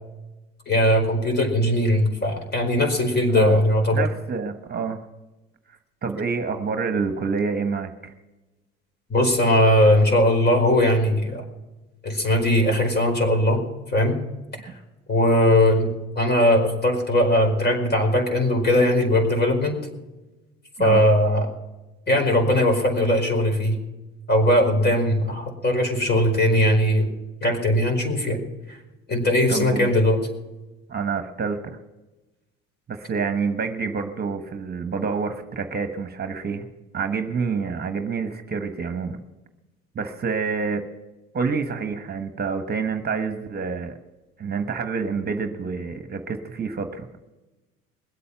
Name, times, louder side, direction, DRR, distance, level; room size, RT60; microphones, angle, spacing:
voice 1, 0.7-4.1 9.1-11.4 12.0-13.6 13.9-14.2 14.6-14.7 15.1-15.9 16.1-19.8 20.8-21.5 22.1-23.8 24.3-27.1 27.4-28.4 28.7-28.8 29.1-30.2, left 1 dB, 35° left, 4 dB, 4.8 m, -19 dB
voice 2, 3.9-5.0 6.0-8.1 20.8-21.1 29.5-29.9 30.9-31.8 32.9-36.6 36.9-39.2 39.9-40.8 41.3-44.0 44.4-47.1, right 5 dB, 35° right, 7 dB, 1.3 m, -27 dB
21.5 x 8.4 x 5.9 m, 1.1 s
hypercardioid pair, 70°, 30 cm